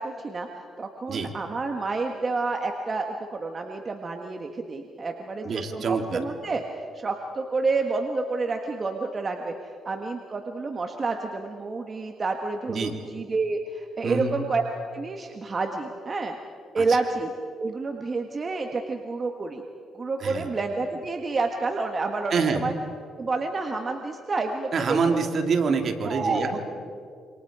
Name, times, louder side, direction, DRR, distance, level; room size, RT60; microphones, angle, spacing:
voice 1, 0.0-6.6 6.9-14.6 14.9-16.4 16.7-17.3 17.6-19.6 19.9-22.7 23.2-25.2 26.0-26.5, right 3 dB, 35° right, 3 dB, 1.6 m, -29 dB
voice 2, 5.4-6.2 12.7-13.0 14.0-14.4 16.8-17.0 20.2-20.5 22.3-22.6 24.7-26.6, right 5 dB, 55° right, 4 dB, 2.6 m, -26 dB
27.5 x 26.0 x 4.9 m, 2.3 s
cardioid pair, 90°, 0 cm